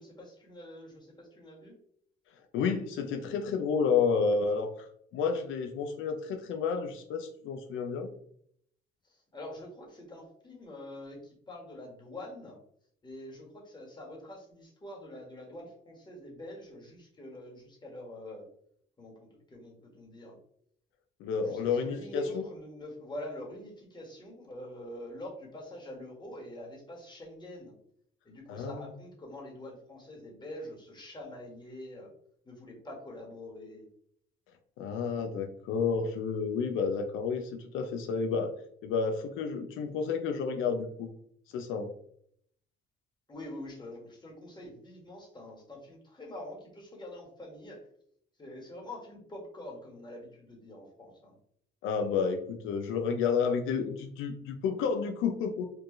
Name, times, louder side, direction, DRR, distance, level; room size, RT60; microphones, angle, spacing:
voice 1, 0.0-1.7 9.1-12.6 13.0-18.5 19.0-20.4 21.4-27.8 28.2-32.1 32.4-33.9 43.3-47.9 48.4-51.4, left 1 dB, 20° left, -2 dB, 1.5 m, -45 dB
voice 2, 2.5-4.9 5.1-8.1 21.2-22.4 28.5-28.8 34.8-38.5 38.8-41.1 41.5-41.9 51.8-55.7, left 5 dB, 85° left, 6 dB, 0.5 m, -30 dB
4.5 x 2.3 x 3.0 m, 0.67 s
cardioid pair, 90°, 20 cm